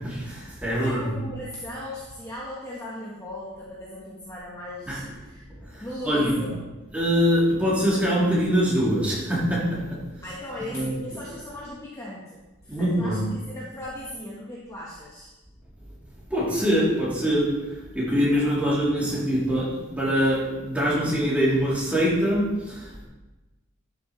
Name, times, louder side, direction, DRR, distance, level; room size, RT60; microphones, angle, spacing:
voice 1, 0.0-1.1 4.9-5.0 5.6-6.4 6.9-10.2 10.7-10.9 12.7-13.3 16.3-23.1, equal, 5° right, -8 dB, 3.1 m, -24 dB
voice 2, 0.8-5.4 5.8-6.6 10.2-15.3 18.6-18.7, left 1 dB, 15° left, -6 dB, 1.2 m, -38 dB
12.5 x 7.1 x 3.2 m, 1.1 s
head